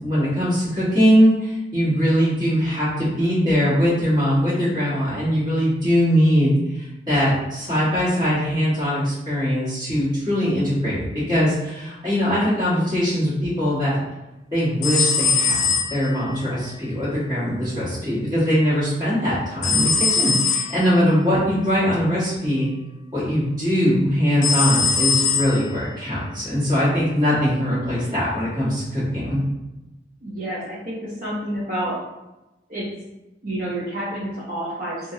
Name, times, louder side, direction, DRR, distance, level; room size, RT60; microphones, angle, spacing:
voice 1, 0.0-14.0 14.5-22.7 23.1-29.4, equal, 25° right, -11 dB, 1.4 m, -21 dB
sound 1, 14.8-16.4 19.6-20.9 24.4-25.8, left 5 dB, 40° left, 0.3 m, -21 dB
voice 2, 30.2-32.0 32.7-32.9 33.4-35.1, right 1 dB, 50° right, -9 dB, 0.6 m, -29 dB
3.1 x 2.4 x 2.6 m, 1.0 s
head